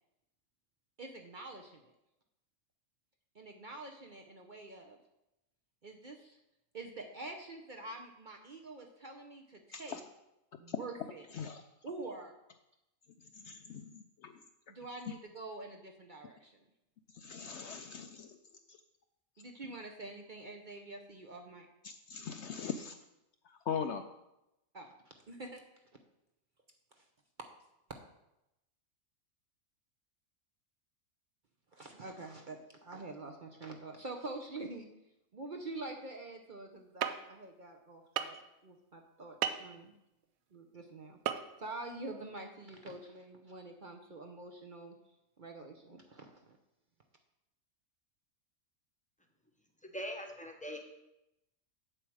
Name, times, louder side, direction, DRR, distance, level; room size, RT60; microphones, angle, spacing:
voice 1, 1.0-1.9 3.3-5.0 5.8-6.4 6.7-10.0 10.6-11.3 11.8-12.3 14.7-16.6 19.4-21.7 24.7-25.6 27.0-27.1 31.7-34.9 35.3-38.4 38.6-39.9 40.5-41.2 41.6-44.9 45.4-46.6, right 2 dB, 45° right, 2 dB, 0.8 m, -46 dB
voice 2, 13.4-13.9 14.2-14.3 17.1-18.4 21.8-23.0 23.5-24.0, left 7 dB, 65° left, 7 dB, 0.7 m, -40 dB
sound 1, 37.0-37.1 38.2-38.4 39.4-39.6 41.3-41.4 41.7-41.8, right 9 dB, 80° right, 1.1 m, -32 dB
voice 3, 49.9-50.8, equal, 5° left, 3 dB, 0.9 m, -41 dB
7.7 x 7.5 x 4.7 m, 0.88 s
omnidirectional pair, 1.5 m